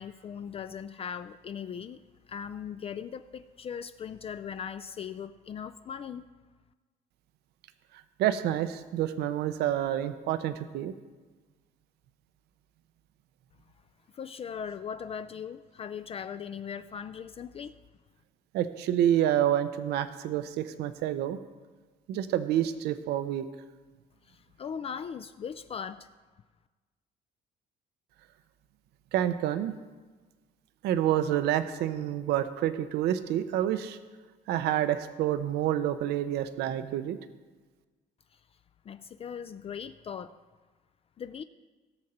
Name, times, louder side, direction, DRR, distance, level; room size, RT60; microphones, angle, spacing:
voice 1, 0.0-2.0 2.3-6.3 14.1-17.8 24.2-26.1 38.3-38.4 38.8-40.4 41.2-41.4, left 7 dB, 35° left, 12 dB, 0.4 m, -39 dB
voice 2, 8.2-10.9 18.5-21.4 22.1-23.5 29.1-29.8 30.8-34.0 34.5-37.2, right 11 dB, 80° right, 11 dB, 0.6 m, -28 dB
17.0 x 6.5 x 4.3 m, 1.3 s
cardioid pair, 110°, 17 cm